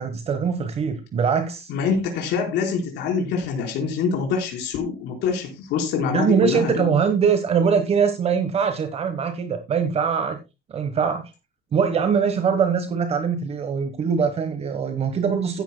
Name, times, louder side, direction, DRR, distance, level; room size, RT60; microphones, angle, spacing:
voice 1, 0.0-1.7 6.1-10.4 10.7-11.3 11.7-15.6, right 6 dB, 35° right, 8 dB, 1.3 m, -22 dB
voice 2, 1.7-6.9, left 5 dB, 75° left, 2 dB, 4.5 m, -25 dB
15.5 x 10.5 x 2.2 m, 0.25 s
cardioid pair, 160°, 18 cm